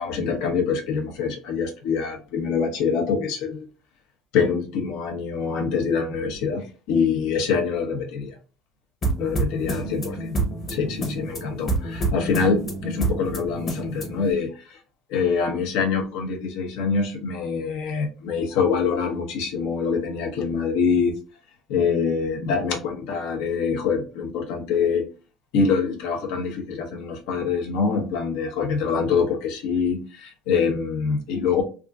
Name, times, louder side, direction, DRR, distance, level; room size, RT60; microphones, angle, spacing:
voice 1, 0.0-3.7 4.3-8.4 9.2-10.4 10.7-14.8 15.1-21.2 21.7-25.0 25.5-31.6, left 5 dB, 80° left, 2 dB, 0.9 m, -25 dB
sound 1, 9.0-14.3, right 2 dB, 35° left, 0.9 m, -28 dB
3.5 x 2.5 x 2.4 m, 0.35 s
cardioid pair, 125°, 0 cm